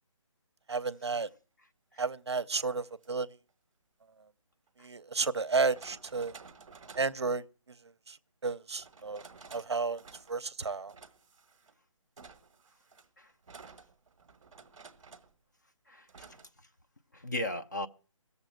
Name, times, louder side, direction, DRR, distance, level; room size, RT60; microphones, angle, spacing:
voice 1, 0.7-1.3 2.0-3.3 4.8-6.3 7.0-7.8 8.1-8.2 8.4-9.2 9.5-10.0 10.3-10.9, right 4 dB, 55° right, 0.5 m, -32 dB
sound 1, 2.9-3.1 4.7-4.8 5.5-7.2 8.7-9.7 10.0-10.5 10.9-11.7 12.2-15.4 16.1-16.5, right 5 dB, 10° right, 0.7 m, -53 dB
voice 2, 15.9-16.4 17.1-17.9, left 1 dB, 35° left, 0.5 m, -37 dB
16.5 x 7.0 x 7.7 m
hypercardioid pair, 180°, 17 cm